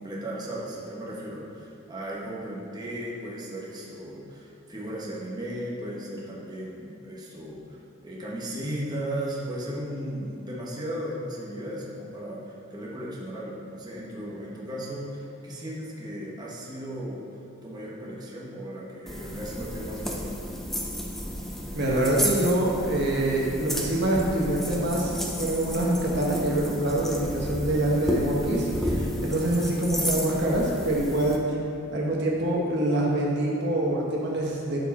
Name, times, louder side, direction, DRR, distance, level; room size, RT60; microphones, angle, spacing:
voice 1, 0.0-17.3 17.6-20.3, right 1 dB, 20° right, -6 dB, 1.2 m, -36 dB
sound 1, 19.1-31.4, equal, ahead, 0.6 m, -32 dB
voice 2, 21.7-31.4 31.9-34.8, right 1 dB, 55° right, -3 dB, 1.1 m, -25 dB
11.5 x 4.7 x 4.2 m, 2.6 s
head